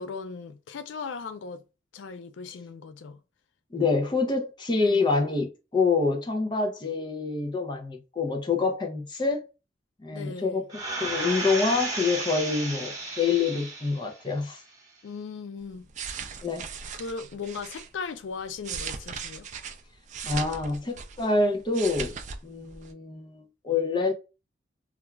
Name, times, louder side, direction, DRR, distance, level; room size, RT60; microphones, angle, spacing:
voice 1, 0.0-1.6 1.9-3.2 4.8-5.1 10.1-10.6 15.0-15.9 16.9-19.5, left 5 dB, 80° left, 0.4 m, -38 dB
voice 2, 3.7-9.5 10.0-14.6 16.4-16.6 20.2-22.2 22.4-24.1, left 4 dB, 25° left, 0.5 m, -26 dB
sound 1, 10.7-14.1 14.6-14.7, right 2 dB, 20° right, 0.9 m, -33 dB
sound 2, 15.7-17.9 18.4-21.3 21.6-22.4 22.7-22.9, right 6 dB, 40° right, 0.3 m, -38 dB
2.3 x 2.3 x 3.0 m
head